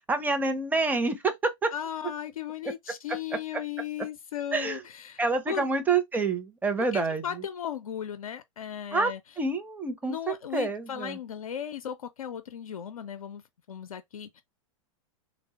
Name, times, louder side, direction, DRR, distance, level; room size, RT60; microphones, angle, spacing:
voice 1, 0.1-1.7 4.5-4.8 5.2-7.2 8.9-9.1 9.4-11.2, right 3 dB, 10° right, 0.6 m, -27 dB
voice 2, 1.7-5.7 6.8-9.2 10.0-13.4 13.7-14.4, left 9 dB, 85° left, 0.4 m, -36 dB
3.4 x 2.0 x 2.8 m
hypercardioid pair, 105°, 18 cm